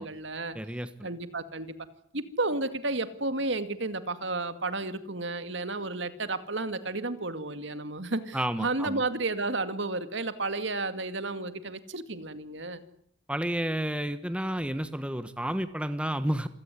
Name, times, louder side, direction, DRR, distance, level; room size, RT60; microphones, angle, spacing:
voice 1, 0.0-0.6 1.0-1.7 2.1-12.8, right 2 dB, 65° right, 11 dB, 2.2 m, -32 dB
voice 2, 0.5-1.1 8.3-9.0 13.3-16.5, right 1 dB, 5° right, 11 dB, 1.2 m, -31 dB
27.0 x 17.0 x 9.8 m, 0.67 s
head